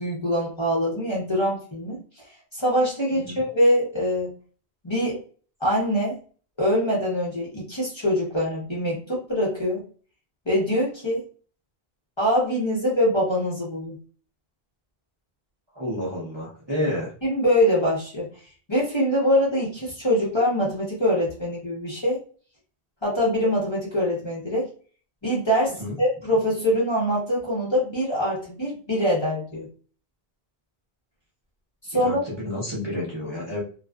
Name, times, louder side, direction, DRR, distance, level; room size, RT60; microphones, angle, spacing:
voice 1, 0.0-2.3 2.5-4.3 4.8-5.2 5.6-6.1 6.6-9.8 10.5-11.2 12.2-14.0 17.2-18.3 18.7-22.2 23.0-24.7 25.2-29.7 31.8-32.2, equal, 30° left, -5 dB, 0.8 m, -24 dB
voice 2, 15.7-17.1 25.8-26.0 32.0-33.6, left 1 dB, 30° right, -6 dB, 0.7 m, -29 dB
2.4 x 2.3 x 2.2 m, 0.40 s
omnidirectional pair, 1.0 m